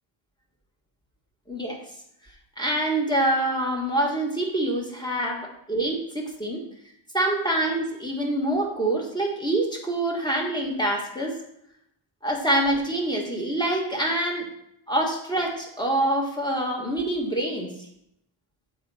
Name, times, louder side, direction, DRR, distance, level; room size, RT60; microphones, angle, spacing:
voice 1, 1.5-1.8 2.6-6.6 7.1-11.4 12.2-14.5 14.9-17.7, right 1 dB, 10° left, -1 dB, 1.5 m, -25 dB
7.5 x 4.7 x 4.2 m, 0.77 s
wide cardioid pair, 110°, 50 cm